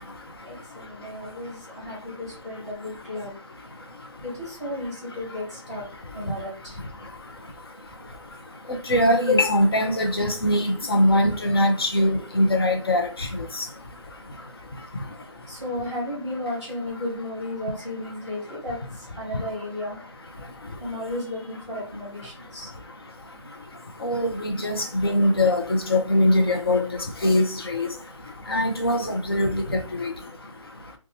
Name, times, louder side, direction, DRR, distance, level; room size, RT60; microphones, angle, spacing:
voice 1, 0.4-3.3 4.2-5.9 6.1-6.8 13.7-14.0 15.5-20.0 20.8-22.7, left 1 dB, 15° left, 1.3 m, -34 dB
voice 2, 8.9-13.3 13.6-13.7 24.0-26.8 27.2-27.9 28.5-30.1, left 1 dB, 50° left, 0.5 m, -22 dB
2.7 x 2.2 x 2.7 m
hypercardioid pair, 180°, 16 cm